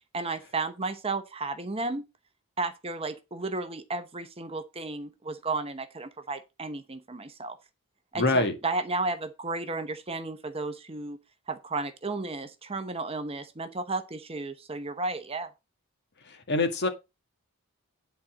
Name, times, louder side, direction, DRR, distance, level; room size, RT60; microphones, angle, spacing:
voice 1, 0.1-2.0 2.6-7.6 8.1-11.2 11.5-15.5, right 3 dB, 25° right, 0.9 m, -33 dB
voice 2, 8.1-8.6 16.3-16.9, left 2 dB, 50° left, 1.9 m, -25 dB
10.5 x 4.2 x 6.1 m
head